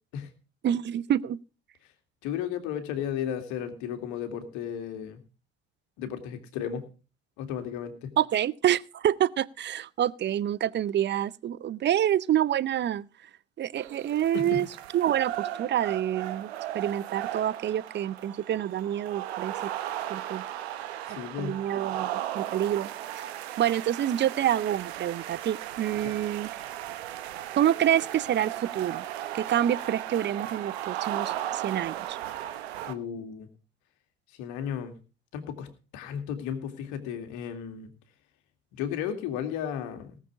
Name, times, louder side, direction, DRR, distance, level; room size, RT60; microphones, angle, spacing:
voice 1, 0.6-1.4 8.2-13.1 13.6-14.7 14.9-19.7 20.1-20.4 21.4-22.9 23.6-26.5 27.6-29.0 29.3-32.2, right 11 dB, 35° right, 0.6 m, -27 dB
voice 2, 2.2-5.2 6.0-6.9 7.4-8.1 14.3-14.6 21.1-21.6 26.0-26.2 32.9-33.5 34.4-35.0 35.3-37.9 38.7-40.2, left 9 dB, 65° left, 2.3 m, -34 dB
sound 1, 13.8-32.9, right 12 dB, 75° right, 1.1 m, -36 dB
18.5 x 7.4 x 4.8 m
figure-of-eight pair, 60°, 32 cm